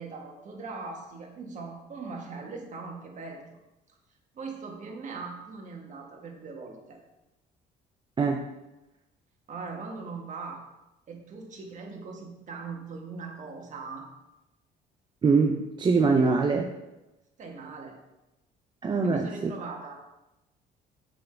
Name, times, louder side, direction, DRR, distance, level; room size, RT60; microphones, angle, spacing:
voice 1, 0.0-3.6 4.3-7.0 9.5-10.6 11.1-14.1 17.4-17.9 19.0-20.0, right 4 dB, 45° right, 1 dB, 1.4 m, -40 dB
voice 2, 8.2-8.5 15.2-16.7 18.8-19.5, right 4 dB, 25° right, 3 dB, 0.5 m, -23 dB
6.9 x 3.8 x 4.4 m, 0.97 s
cardioid pair, 110°, 17 cm